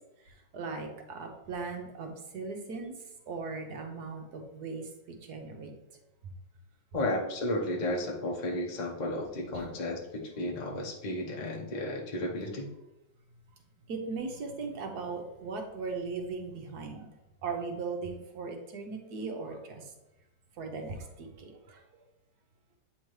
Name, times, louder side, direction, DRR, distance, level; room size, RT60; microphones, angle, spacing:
voice 1, 0.2-2.9 3.3-5.7 6.2-6.3 9.5-9.7 13.9-17.1 17.4-19.9 20.6-21.8, right 4 dB, 60° right, 3 dB, 1.2 m, -38 dB
voice 2, 6.9-12.7, left 1 dB, 65° left, -1 dB, 0.4 m, -33 dB
8.8 x 3.6 x 3.2 m, 0.96 s
omnidirectional pair, 2.3 m